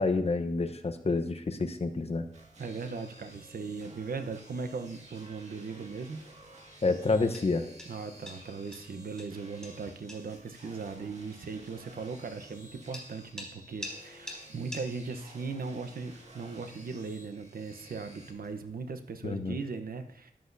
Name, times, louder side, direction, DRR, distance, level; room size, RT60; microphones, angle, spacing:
voice 1, 0.0-2.3 6.8-7.7 19.2-19.6, left 3 dB, 40° left, 8 dB, 0.9 m, -28 dB
sound 1, 1.1-19.4, left 1 dB, 5° left, 2.8 m, -52 dB
sound 2, 2.3-18.3, right 1 dB, 45° right, 2.0 m, -53 dB
voice 2, 2.6-6.2 7.9-20.3, right 4 dB, 70° right, 8 dB, 0.9 m, -38 dB
13.5 x 10.5 x 2.7 m, 0.72 s
wide cardioid pair, 130°, 16 cm